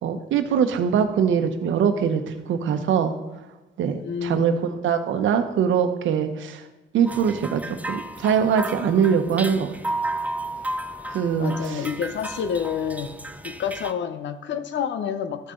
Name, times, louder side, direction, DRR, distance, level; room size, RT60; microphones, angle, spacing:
voice 1, 0.0-2.2 2.5-3.1 3.8-6.6 6.9-9.7 11.1-11.8, right 7 dB, 75° right, 8 dB, 1.0 m, -22 dB
voice 2, 4.0-4.7 11.4-13.2 13.4-15.5, left 8 dB, 65° left, 11 dB, 0.9 m, -29 dB
sound 1, 7.1-13.9, right 1 dB, 5° right, 0.5 m, -33 dB
13.5 x 6.7 x 3.9 m, 1.1 s
cardioid pair, 90°, 20 cm